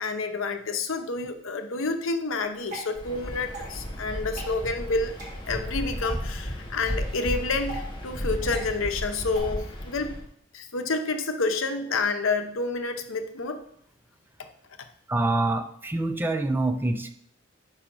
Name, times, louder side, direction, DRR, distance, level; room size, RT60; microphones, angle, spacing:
voice 1, 0.0-5.1 5.5-10.1 10.5-13.6, left 3 dB, 80° left, 7 dB, 0.7 m, -29 dB
Water / Drip, 2.4-9.4, right 1 dB, 40° right, 2.4 m, -44 dB
Waves surf, 2.9-10.3, equal, 25° left, 1.1 m, -34 dB
voice 2, 15.1-17.1, right 2 dB, 10° right, 7 dB, 0.3 m, -26 dB
4.9 x 4.8 x 6.0 m, 0.69 s
head